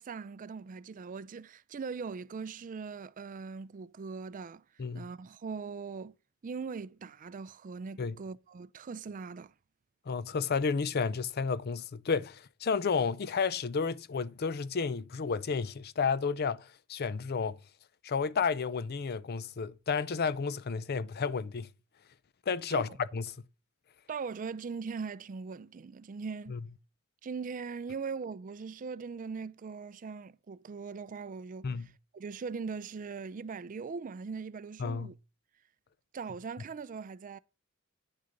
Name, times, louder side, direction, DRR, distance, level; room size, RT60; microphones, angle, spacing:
voice 1, 0.0-4.6 4.9-6.1 6.4-9.5 22.7-22.8 24.1-26.6 27.2-35.1 36.1-37.4, right 5 dB, 40° right, 0.4 m, -40 dB
voice 2, 10.1-17.6 18.0-21.7 22.5-23.2 26.5-26.6 31.6-31.9 34.8-35.1, left 5 dB, 50° left, 0.5 m, -31 dB
9.9 x 6.6 x 5.2 m
head